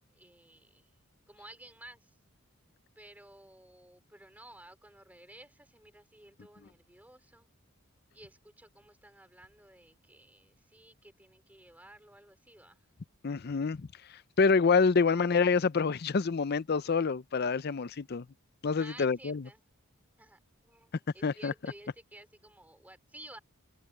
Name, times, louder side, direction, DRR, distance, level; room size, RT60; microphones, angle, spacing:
voice 1, 0.1-0.9 1.3-2.1 2.9-7.5 8.1-12.9 18.7-19.7 20.2-23.4, right 1 dB, 5° right, 3.3 m, -54 dB
voice 2, 13.2-13.9 14.4-18.3 18.6-19.4 21.2-21.5, left 5 dB, 45° left, 0.5 m, -27 dB
head